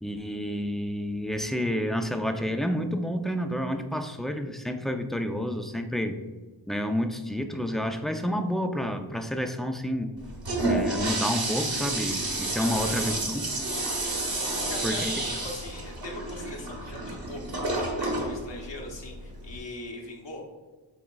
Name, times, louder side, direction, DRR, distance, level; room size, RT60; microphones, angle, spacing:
voice 1, 0.0-6.1 6.7-10.1 10.6-13.5 14.8-15.1, equal, ahead, 6 dB, 0.3 m, -29 dB
Toilet flush, 10.2-19.6, right 2 dB, 50° right, 1.2 m, -30 dB
voice 2, 12.5-13.0 14.5-20.4, left 2 dB, 65° left, 0 dB, 1.1 m, -41 dB
7.4 x 3.1 x 2.3 m, 1.3 s
cardioid pair, 45°, 46 cm